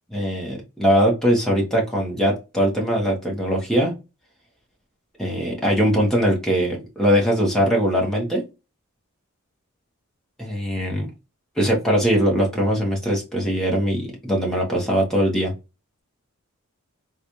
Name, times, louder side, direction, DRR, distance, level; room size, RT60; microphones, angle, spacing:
voice 1, 0.1-3.9 5.2-8.4 10.4-11.1 11.6-15.5, equal, ahead, -2 dB, 1.0 m, -21 dB
3.9 x 2.4 x 3.0 m, 0.27 s
head